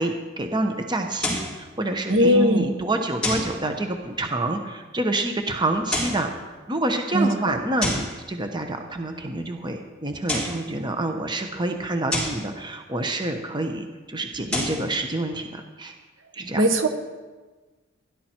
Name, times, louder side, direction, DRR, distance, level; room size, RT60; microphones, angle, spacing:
voice 1, 0.0-6.3 6.7-15.9 16.3-16.6, right 2 dB, 20° right, 5 dB, 1.0 m, -27 dB
sound 1, 1.2-1.6 3.2-3.6 5.7-6.3 7.8-8.2 10.1-10.6 12.1-12.4 14.3-14.8, left 1 dB, 5° left, 4.2 m, -28 dB
voice 2, 2.1-2.7 7.1-7.3 16.6-16.9, equal, 70° right, 6 dB, 1.5 m, -18 dB
16.5 x 12.0 x 4.5 m, 1.3 s
head